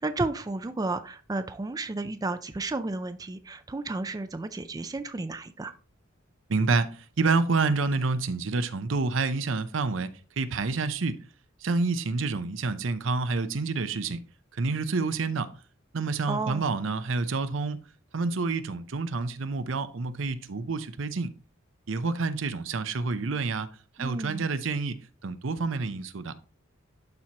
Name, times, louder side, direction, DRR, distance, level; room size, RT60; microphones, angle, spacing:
voice 1, 0.0-5.7 16.3-16.6 24.0-24.5, right 3 dB, 20° right, 0.4 m, -32 dB
voice 2, 6.5-10.1 10.4-11.2 11.6-14.2 14.5-15.5 15.9-17.8 18.1-21.3 21.9-23.7 24.0-26.3, right 4 dB, 70° right, 0.6 m, -28 dB
11.5 x 4.5 x 2.8 m
head